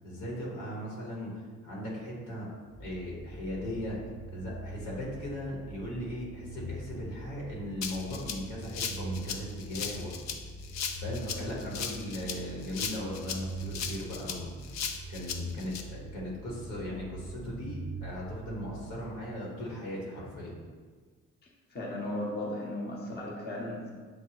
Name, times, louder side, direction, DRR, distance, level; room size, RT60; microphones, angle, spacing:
voice 1, 0.0-1.3 1.6-2.5 2.8-4.0 4.3-10.1 11.0-14.5 15.1-20.6, equal, 85° left, -4 dB, 1.3 m, -38 dB
sound 1, 2.7-19.6, right 2 dB, 5° left, 0.3 m, -43 dB
Rattle (instrument), 7.8-15.8, left 7 dB, 65° left, 0.5 m, -37 dB
voice 2, 21.4-23.9, left 1 dB, 35° left, -2 dB, 0.8 m, -36 dB
6.4 x 2.2 x 2.9 m, 1.5 s
cardioid pair, 90°, 30 cm